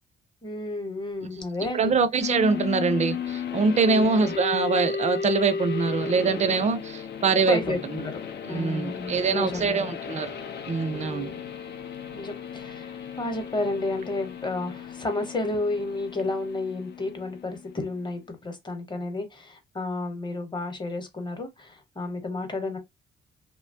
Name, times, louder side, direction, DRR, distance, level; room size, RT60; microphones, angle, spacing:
voice 1, 0.4-1.9 3.8-4.1 7.4-8.2 8.5-9.8 10.9-11.4 12.1-22.8, left 2 dB, 25° left, 0.9 m, -31 dB
voice 2, 1.7-8.1 8.5-10.4 10.7-11.3, right 4 dB, 35° right, 0.5 m, -24 dB
sound 1, 2.2-17.9, left 6 dB, 55° left, 0.5 m, -35 dB
2.8 x 2.2 x 2.6 m
cardioid pair, 90°, 20 cm